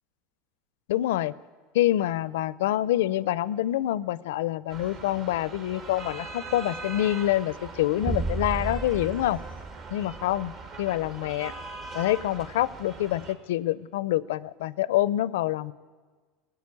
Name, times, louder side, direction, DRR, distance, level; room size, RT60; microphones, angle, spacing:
voice 1, 0.9-1.3 1.7-9.4 9.9-10.5 10.8-11.5 11.9-15.7, left 14 dB, 85° left, 19 dB, 0.4 m, -26 dB
sound 1, 4.7-13.3, right 3 dB, 50° right, 2.1 m, -41 dB
sound 2, 8.0-10.6, right 3 dB, 15° right, 0.4 m, -33 dB
18.0 x 8.1 x 9.7 m, 1.5 s
supercardioid pair, 120°, 0 cm